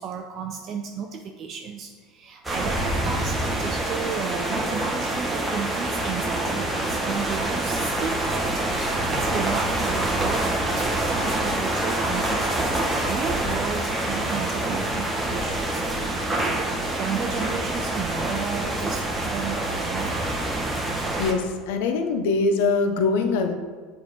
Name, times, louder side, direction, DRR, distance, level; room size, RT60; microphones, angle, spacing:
voice 1, 0.0-10.4 10.7-16.1 16.4-20.2, right 6 dB, 45° right, 3 dB, 0.5 m, -33 dB
sound 1, 2.4-21.3, right 1 dB, 10° right, 1.2 m, -26 dB
voice 2, 21.2-23.5, left 4 dB, 80° left, 6 dB, 0.8 m, -23 dB
7.4 x 3.7 x 5.1 m, 1.5 s
supercardioid pair, 120°, 0 cm